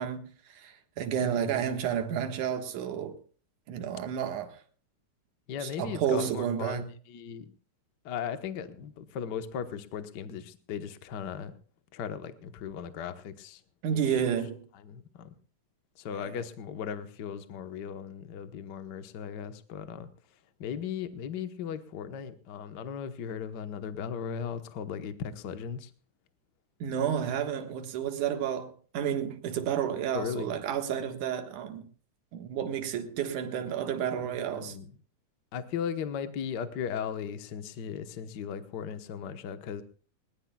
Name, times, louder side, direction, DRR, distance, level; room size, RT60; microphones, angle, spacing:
voice 1, 0.0-3.2 3.7-4.6 5.6-6.9 13.8-14.7 16.1-16.4 26.8-31.9 32.3-34.8, right 8 dB, 75° right, 3.0 m, -31 dB
voice 2, 5.5-7.5 8.0-11.6 11.9-13.6 13.9-14.0 14.8-15.3 16.0-20.1 20.6-25.9 30.1-30.5 34.2-34.9 35.5-39.8, left 7 dB, 60° left, 1.1 m, -37 dB
20.5 x 19.5 x 2.3 m
omnidirectional pair, 3.6 m